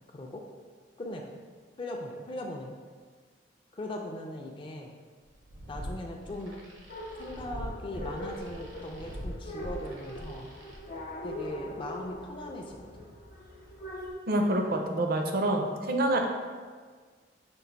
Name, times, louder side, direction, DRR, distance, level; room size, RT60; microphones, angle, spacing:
voice 1, 0.1-0.4 1.0-1.3 1.8-2.7 3.7-4.9 5.7-6.6 7.2-10.5 11.2-13.1, left 1 dB, 30° left, 0 dB, 0.4 m, -39 dB
sound 1, 5.3-10.8, equal, 90° right, 0.9 m, -44 dB
sound 2, 6.9-14.1, equal, 50° left, 0.8 m, -41 dB
voice 2, 14.3-16.3, right 1 dB, 55° right, 3 dB, 0.5 m, -27 dB
5.3 x 2.4 x 3.9 m, 1.5 s
head